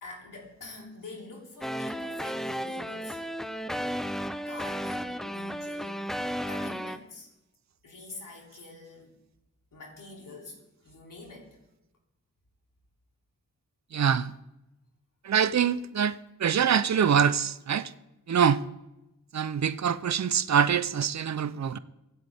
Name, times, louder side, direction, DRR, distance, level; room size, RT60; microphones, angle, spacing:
voice 1, 0.0-3.2 4.4-7.3 7.8-9.1 9.7-11.6, left 3 dB, 85° left, 3.1 m, -46 dB
sound 1, 1.6-7.0, equal, ahead, 0.6 m, -34 dB
voice 2, 13.9-14.3 15.3-16.1 16.4-17.9 18.3-18.6 19.3-21.8, right 7 dB, 60° right, 0.7 m, -24 dB
24.0 x 8.1 x 3.5 m
cardioid pair, 60°, 32 cm